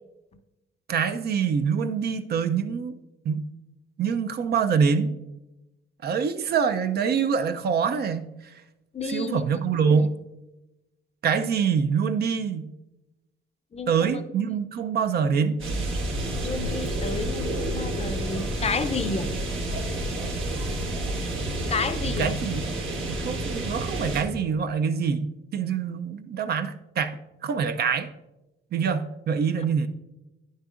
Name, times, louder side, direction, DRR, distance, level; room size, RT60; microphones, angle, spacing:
voice 1, 0.9-3.0 3.3-3.5 4.0-5.2 6.0-8.5 9.0-10.1 11.2-12.7 13.9-15.6 22.1-22.6 23.1-27.2 27.4-28.1 28.7-29.9, right 6 dB, 55° right, 10 dB, 0.5 m, -25 dB
voice 2, 8.9-9.4 13.7-14.2 16.4-19.3 21.7-22.3, left 4 dB, 30° left, 10 dB, 0.5 m, -30 dB
sound 1, 15.6-24.2, right 1 dB, 80° right, 1.5 m, -29 dB
9.1 x 6.4 x 2.5 m, 0.97 s
cardioid pair, 90°, 20 cm